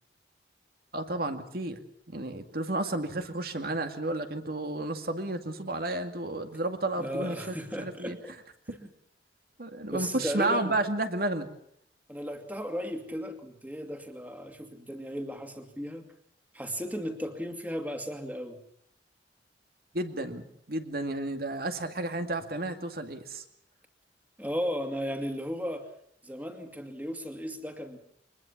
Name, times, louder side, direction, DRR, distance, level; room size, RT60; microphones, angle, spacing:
voice 1, 0.9-1.8 2.1-8.2 9.6-11.5 19.9-23.4, right 2 dB, 55° right, 7 dB, 2.2 m, -32 dB
voice 2, 7.0-8.3 8.7-8.9 9.9-10.8 12.1-16.1 16.5-18.6 24.4-25.9 26.2-28.0, equal, 10° right, 5 dB, 2.4 m, -35 dB
23.5 x 20.5 x 7.3 m, 0.69 s
head